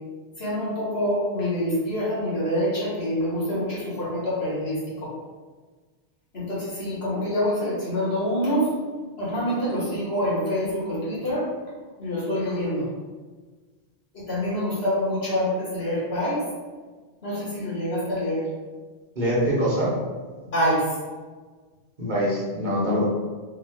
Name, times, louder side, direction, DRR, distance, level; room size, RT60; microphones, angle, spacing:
voice 1, 0.4-5.1 6.3-8.7 9.2-11.5 12.0-12.9 14.1-16.4 17.2-18.4 20.4-21.0, equal, 70° left, -7 dB, 1.8 m, -26 dB
voice 2, 19.2-19.9 22.0-23.0, equal, 45° right, -6 dB, 1.2 m, -23 dB
3.6 x 2.9 x 3.5 m, 1.4 s
omnidirectional pair, 1.1 m